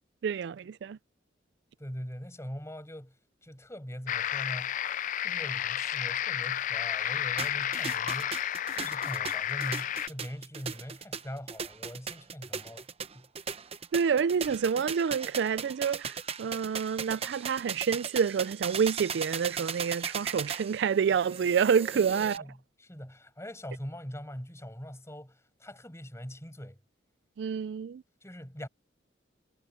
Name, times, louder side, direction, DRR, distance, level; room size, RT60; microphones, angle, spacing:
voice 1, 0.2-1.0 13.9-22.4 27.4-28.0, right 6 dB, 60° right, 0.3 m, -28 dB
voice 2, 1.8-3.2 3.4-4.8 5.2-8.4 8.7-12.9 13.1-13.3 21.9-26.8 28.2-28.7, equal, 15° left, 6.2 m, -42 dB
sound 1, 4.1-10.1, left 10 dB, 40° left, 0.4 m, -31 dB
sound 2, 7.4-22.4, right 6 dB, 30° right, 0.9 m, -38 dB
head